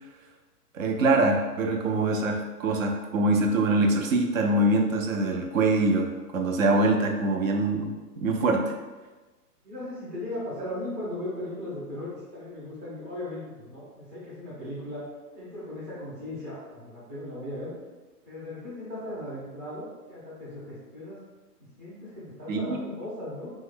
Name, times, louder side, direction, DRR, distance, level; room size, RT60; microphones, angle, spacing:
voice 1, 0.7-8.6 22.5-22.8, right 2 dB, 55° right, 3 dB, 0.5 m, -24 dB
voice 2, 9.6-15.1 15.3-17.7 18.2-21.2 21.8-23.5, left 1 dB, 10° right, -10 dB, 0.5 m, -37 dB
3.0 x 2.1 x 3.6 m, 1.2 s
hypercardioid pair, 150°, 48 cm